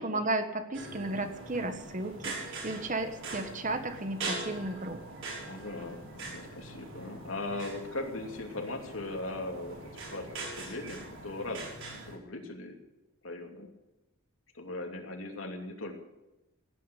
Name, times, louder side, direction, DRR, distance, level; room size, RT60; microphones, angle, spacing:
voice 1, 0.0-5.0, right 2 dB, 35° right, 8 dB, 1.3 m, -34 dB
sound 1, 0.7-12.1, right 2 dB, 60° right, 6.8 m, -42 dB
voice 2, 5.3-9.8 10.1-11.6 12.1-12.8 13.2-13.7 14.5-16.0, left 2 dB, 70° left, 3 dB, 2.8 m, -39 dB
17.0 x 9.4 x 8.4 m, 0.99 s
head